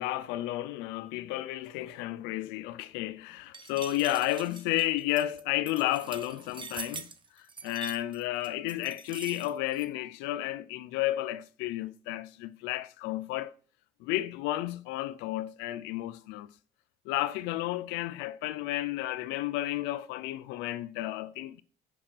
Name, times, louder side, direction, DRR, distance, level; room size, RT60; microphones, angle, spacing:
voice 1, 0.0-7.1 7.4-13.5 14.0-16.5 17.1-21.6, left 15 dB, 90° left, 0.6 m, -32 dB
sound 1, 3.5-9.9, right 5 dB, 25° right, 1.0 m, -44 dB
9.8 x 6.1 x 3.4 m
cardioid pair, 100°, 18 cm